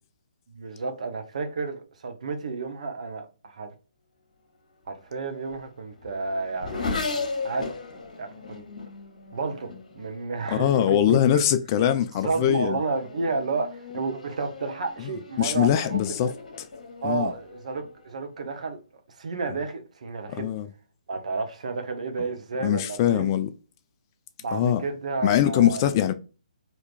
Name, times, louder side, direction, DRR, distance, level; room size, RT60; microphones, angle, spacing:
voice 1, 0.5-3.7 4.9-7.0 7.4-7.7 8.2-8.6 9.3-11.6 12.2-16.3 17.0-18.8 19.1-20.5 21.1-23.3 24.4-25.9, right 4 dB, 55° right, 0.8 m, -31 dB
Race car auto racing / Accelerating revving vroom, 4.9-10.8 11.6-12.0 12.4-18.3, left 4 dB, 60° left, 1.1 m, -37 dB
voice 2, 10.5-12.8 15.4-16.3 17.0-17.3 20.3-20.7 22.6-23.5 24.5-24.8 25.2-26.1, left 10 dB, 30° left, 0.3 m, -22 dB
3.5 x 2.8 x 2.4 m
figure-of-eight pair, 135°, 4 cm